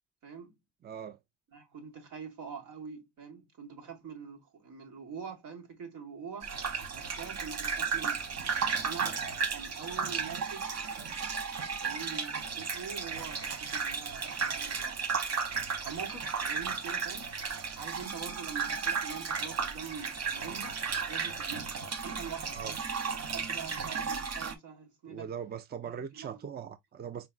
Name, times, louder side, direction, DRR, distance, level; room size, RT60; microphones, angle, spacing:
voice 1, 0.2-0.6 1.5-6.6 6.9-8.3 8.8-9.2 9.5-10.7 11.8-15.0 15.8-17.4 17.7-20.8 21.1-21.8 22.0-22.6 23.2-25.3 26.1-26.4, right 6 dB, 85° right, 1.8 m, -44 dB
voice 2, 0.8-1.2 22.5-22.8 25.1-27.3, right 7 dB, 35° right, 0.5 m, -40 dB
sound 1, 6.4-24.5, right 5 dB, 55° right, 1.0 m, -34 dB
4.5 x 3.6 x 2.3 m
cardioid pair, 90°, 30 cm